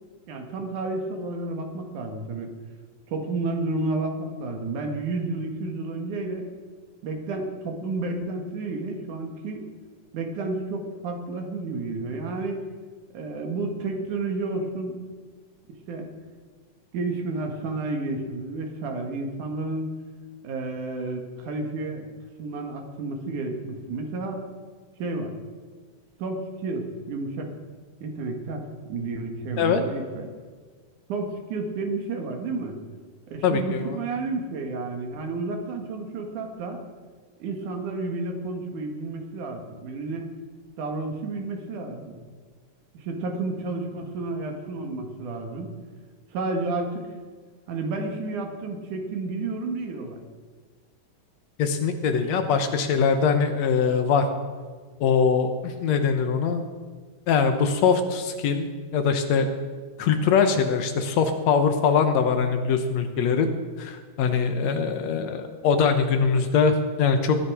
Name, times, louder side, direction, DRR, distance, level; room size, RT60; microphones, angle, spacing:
voice 1, 0.3-2.5 3.1-6.5 7.0-9.7 10.1-12.6 13.1-15.0 15.9-16.1 16.9-19.9 20.4-22.1 22.4-24.4 25.0-25.3 26.2-27.5 28.0-28.6 28.9-30.3 31.1-32.8 33.3-36.8 37.4-40.3 40.8-42.2 42.9-45.7 46.3-47.2 47.7-50.2 64.6-64.8, right 3 dB, 75° right, 3 dB, 3.1 m, -31 dB
voice 2, 33.4-34.0 51.6-54.3 55.0-56.6 57.3-59.5 60.0-63.5 63.8-67.4, left 6 dB, 65° left, 7 dB, 2.1 m, -22 dB
20.5 x 9.8 x 4.9 m, 1.5 s
omnidirectional pair, 3.6 m